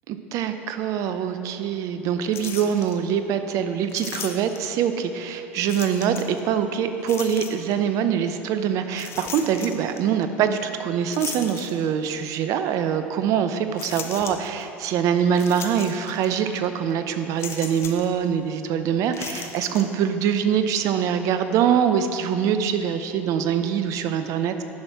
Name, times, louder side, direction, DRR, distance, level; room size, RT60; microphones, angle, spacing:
voice 1, 0.1-24.6, right 8 dB, 50° right, 9 dB, 0.6 m, -24 dB
sound 1, 2.3-3.0 3.9-4.8 5.7-6.4 7.0-7.8 8.9-10.0 11.1-12.2 12.7-12.8 13.8-14.6 15.3-16.3 16.5-16.7 17.4-18.1 19.1-19.8, left 6 dB, 40° left, 0.8 m, -36 dB
10.5 x 5.9 x 4.6 m, 2.8 s
figure-of-eight pair, 70°, 7 cm